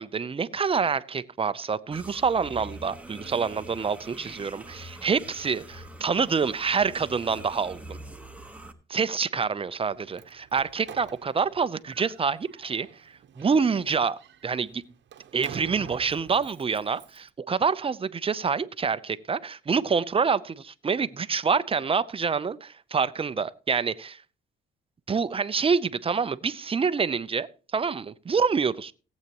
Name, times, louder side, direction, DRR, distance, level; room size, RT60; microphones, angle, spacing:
voice 1, 0.0-5.6 6.0-8.0 8.9-14.8 15.3-24.2 25.1-28.9, right 5 dB, 30° right, 15 dB, 0.7 m, -27 dB
sound 1, 1.9-8.7, right 1 dB, 5° right, 1.2 m, -44 dB
Slam, 9.8-17.3, right 9 dB, 65° right, 1.0 m, -47 dB
17.5 x 8.2 x 3.0 m, 0.35 s
cardioid pair, 90°, 20 cm